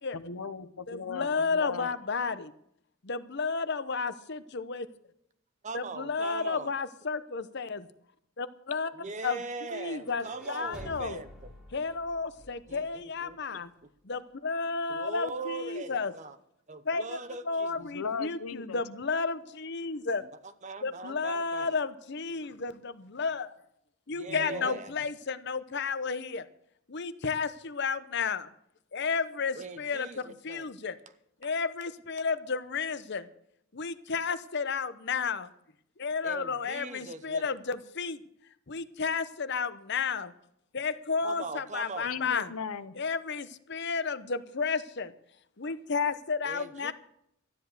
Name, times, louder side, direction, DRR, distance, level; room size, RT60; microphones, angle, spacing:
voice 1, 0.1-1.9 17.7-18.8 24.3-24.8 42.0-42.9, left 5 dB, 85° left, 12 dB, 0.9 m, -38 dB
voice 2, 0.9-2.5 3.0-4.9 5.7-7.9 8.4-8.9 9.2-9.4 9.7-11.2 11.7-13.7 14.0-16.1 16.8-17.2 17.5-20.2 20.8-23.5 24.1-26.5 26.9-28.5 28.9-30.9 31.4-33.3 33.7-35.5 36.0-38.2 38.7-40.3 40.7-42.5 42.9-45.1 45.6-46.9, left 5 dB, 50° left, 13 dB, 0.8 m, -32 dB
voice 3, 5.6-6.7 8.9-11.5 12.7-13.9 14.9-16.4 16.7-17.8 20.2-20.3 20.6-21.8 24.1-24.9 29.6-30.7 31.4-31.5 36.2-37.5 41.2-42.1 46.4-46.9, right 3 dB, 35° right, 12 dB, 0.8 m, -41 dB
sound 1, 9.7-13.6, left 1 dB, 5° right, 1.9 m, -50 dB
13.0 x 10.0 x 6.6 m, 0.73 s
head